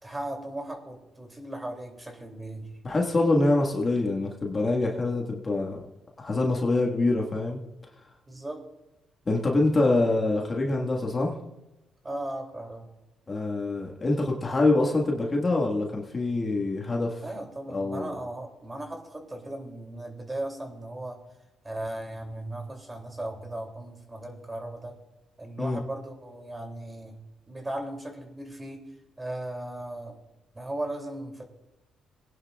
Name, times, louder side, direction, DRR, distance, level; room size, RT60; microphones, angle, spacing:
voice 1, 0.0-2.8 8.3-8.6 12.0-12.9 17.2-21.2 21.6-24.9 25.4-27.2 27.5-28.8 29.2-30.2 30.5-31.4, right 1 dB, 20° right, 3 dB, 2.8 m, -37 dB
voice 2, 2.8-5.8 6.2-7.6 9.3-11.4 13.3-17.2 17.7-18.1 25.6-25.8, left 2 dB, 30° left, 0 dB, 1.7 m, -25 dB
22.0 x 10.5 x 2.4 m, 0.99 s
cardioid pair, 90°, 0 cm